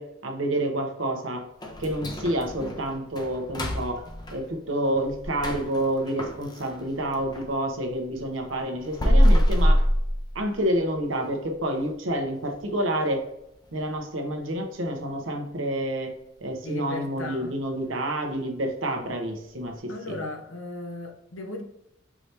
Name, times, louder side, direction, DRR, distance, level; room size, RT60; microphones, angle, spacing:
voice 1, 0.0-1.5 1.8-4.0 4.3-9.8 10.3-13.2 13.7-16.1 16.4-20.2, right 1 dB, 70° right, 3 dB, 0.8 m, -28 dB
sound 1, 1.6-7.5 7.9-10.8 11.1-11.2 11.7-11.8 12.3-12.7 13.0-13.1 13.6-13.7, equal, 20° left, 0.5 m, -25 dB
voice 2, 16.6-17.6 19.9-21.6, left 2 dB, 80° left, 3 dB, 0.8 m, -36 dB
4.8 x 2.8 x 3.3 m, 0.80 s
head